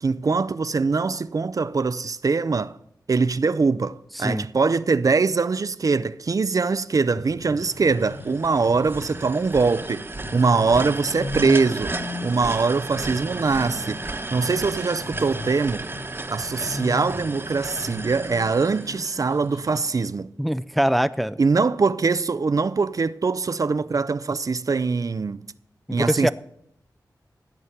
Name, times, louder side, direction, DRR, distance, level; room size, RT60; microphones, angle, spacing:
voice 1, 0.0-2.8 3.1-10.1 10.3-11.9 12.2-14.0 14.3-15.9 16.3-20.3 21.4-25.5 25.9-26.3, right 4 dB, 55° right, 0.5 m, -22 dB
voice 2, 4.2-4.5 20.4-21.4 26.0-26.3, equal, ahead, 0.5 m, -23 dB
sound 1, 7.2-20.1, left 3 dB, 75° left, 1.5 m, -38 dB
sound 2, 7.5-19.6, right 2 dB, 30° right, 1.2 m, -34 dB
16.0 x 8.1 x 5.8 m
cardioid pair, 55°, 7 cm